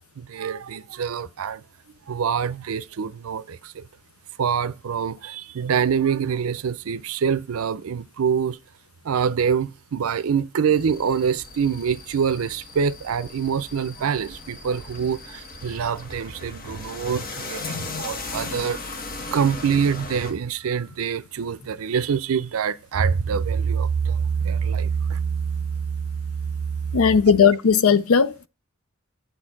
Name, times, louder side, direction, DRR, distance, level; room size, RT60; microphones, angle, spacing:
voice 1, 0.2-1.6 2.1-3.9 4.4-8.6 9.0-18.8 19.3-26.9, right 6 dB, 90° right, 0.4 m, -25 dB
sound 1, 10.8-20.3, left 3 dB, 45° left, 1.0 m, -37 dB
voice 2, 17.6-18.0 26.9-28.5, left 6 dB, 90° left, 0.5 m, -18 dB
7.8 x 4.3 x 4.6 m
head